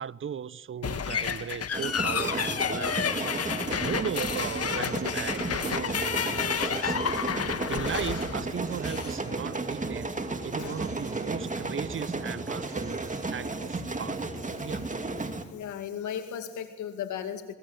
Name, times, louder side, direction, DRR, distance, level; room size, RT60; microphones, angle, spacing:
voice 1, 0.0-7.3 7.5-10.1 10.4-14.2 14.6-14.9, right 7 dB, 45° right, 0.7 m, -37 dB
sound 1, 0.8-9.2, left 7 dB, 55° left, 1.6 m, -31 dB
sound 2, 1.7-15.4, right 3 dB, 25° right, 2.5 m, -33 dB
Telephone, 4.7-5.9 6.6-7.9 8.6-9.9 10.6-11.9 12.6-13.9, right 1 dB, 10° right, 3.6 m, -55 dB
voice 2, 6.2-6.6 10.6-10.8 14.5-14.8 15.4-17.5, left 9 dB, 85° left, 2.3 m, -37 dB
23.5 x 21.5 x 8.0 m
cardioid pair, 70°, 29 cm